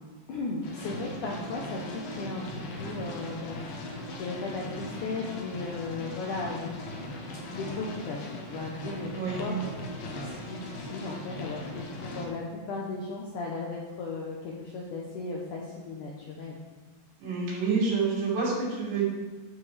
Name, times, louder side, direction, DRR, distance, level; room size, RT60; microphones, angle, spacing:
voice 1, 0.3-6.7 7.5-9.7 10.2-16.6, left 3 dB, 80° left, -2 dB, 1.8 m, -36 dB
sound 1, 0.6-12.3, left 1 dB, 65° left, 2.8 m, -39 dB
voice 2, 9.1-9.5 17.2-19.0, right 4 dB, 80° right, -7 dB, 5.3 m, -28 dB
13.5 x 7.3 x 3.4 m, 1.4 s
omnidirectional pair, 5.0 m